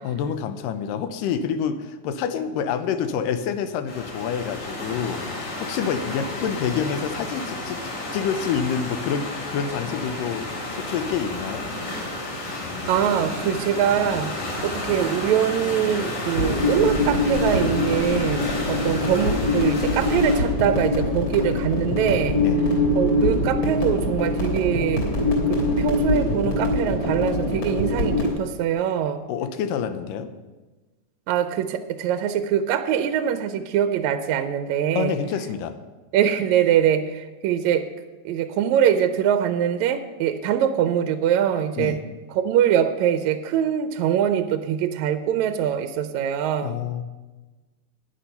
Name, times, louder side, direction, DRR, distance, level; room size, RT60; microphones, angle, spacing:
voice 1, 0.0-7.8 8.1-10.5 10.7-11.6 22.4-22.6 29.3-30.3 35.0-35.8 41.8-42.0 46.6-47.0, left 7 dB, 85° left, 10 dB, 2.4 m, -27 dB
sound 1, 3.9-20.4, left 2 dB, 65° left, 4.1 m, -32 dB
voice 2, 12.9-14.3 14.6-22.4 23.0-25.0 25.5-29.2 31.3-35.1 36.1-37.8 38.3-42.0 42.4-46.8, right 9 dB, 80° right, 9 dB, 1.7 m, -23 dB
sound 2, 16.4-28.3, left 2 dB, 45° left, 4.4 m, -23 dB
11.5 x 9.7 x 5.7 m, 1.2 s
omnidirectional pair, 3.8 m